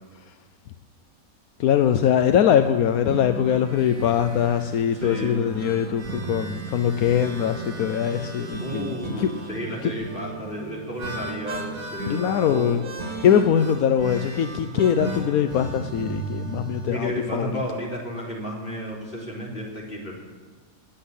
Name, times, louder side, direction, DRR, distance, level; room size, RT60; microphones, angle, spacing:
voice 1, 1.6-9.3 9.8-9.9 12.1-12.8 13.2-17.6, left 9 dB, 80° left, 8 dB, 1.2 m, -22 dB
sound 1, 2.5-16.9, right 2 dB, 70° right, 3.2 m, -35 dB
voice 2, 5.0-5.4 8.6-12.8 16.9-20.2, equal, 40° left, -3 dB, 3.9 m, -32 dB
20.0 x 8.0 x 8.3 m, 1.4 s
omnidirectional pair, 1.5 m